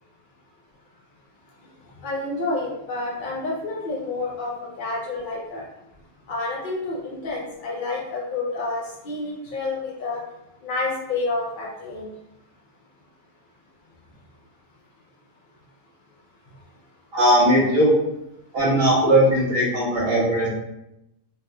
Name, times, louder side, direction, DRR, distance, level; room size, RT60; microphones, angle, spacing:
voice 1, 2.0-5.6 6.3-10.2 10.6-12.1, left 3 dB, 70° left, -4 dB, 0.4 m, -29 dB
voice 2, 17.1-17.9 18.5-20.5, right 1 dB, 65° right, -7 dB, 1.2 m, -18 dB
3.4 x 2.7 x 2.2 m, 0.86 s
omnidirectional pair, 1.6 m